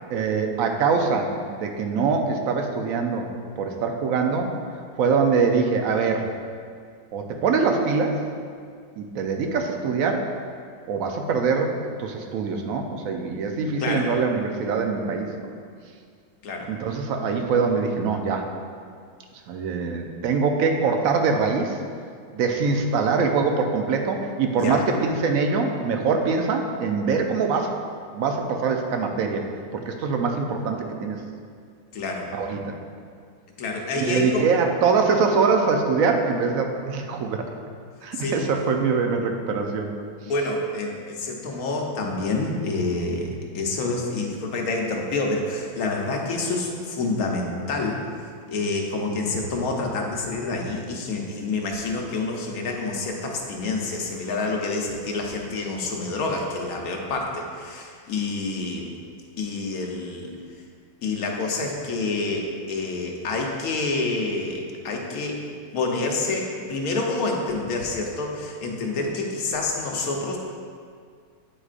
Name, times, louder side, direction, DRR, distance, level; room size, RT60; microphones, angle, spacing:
voice 1, 0.1-3.3 3.6-4.5 5.0-6.3 7.1-8.2 9.0-10.3 10.9-15.5 16.7-18.5 19.5-21.8 22.3-27.7 28.1-29.4 29.7-31.2 32.3-32.7 33.9-37.4 38.0-39.9, right 5 dB, 70° right, 3 dB, 1.0 m, -23 dB
voice 2, 31.9-32.3 33.6-34.5 38.1-38.5 40.2-48.0 48.5-58.9 59.4-60.3 61.0-65.4 65.7-70.4, left 3 dB, 70° left, 1 dB, 1.2 m, -27 dB
8.8 x 4.7 x 2.4 m, 2.1 s
omnidirectional pair, 1.7 m